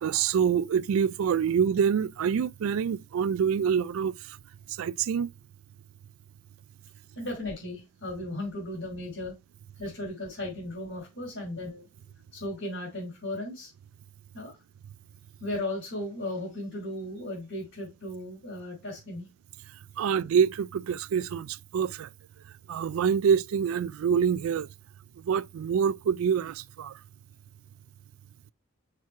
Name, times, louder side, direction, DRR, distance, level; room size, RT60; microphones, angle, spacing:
voice 1, 0.0-4.4 4.7-5.3 20.0-22.1 22.7-24.7 25.2-27.0, right 7 dB, 70° right, 0.3 m, -26 dB
voice 2, 7.2-9.3 9.8-11.8 12.3-13.7 14.3-14.5 15.4-19.3, left 1 dB, 55° left, 4.0 m, -36 dB
5.9 x 4.6 x 4.7 m
head